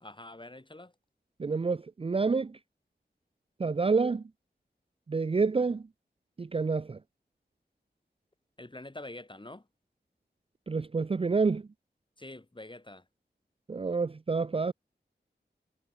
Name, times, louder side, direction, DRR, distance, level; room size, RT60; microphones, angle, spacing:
voice 1, 0.0-0.9 8.6-9.6 12.2-13.0, left 2 dB, 25° left, 2.1 m, -45 dB
voice 2, 1.4-2.6 3.6-4.2 5.1-5.9 6.4-7.0 10.7-11.7 13.7-14.7, right 4 dB, 30° right, 0.4 m, -28 dB
wide cardioid pair, 50°, 19 cm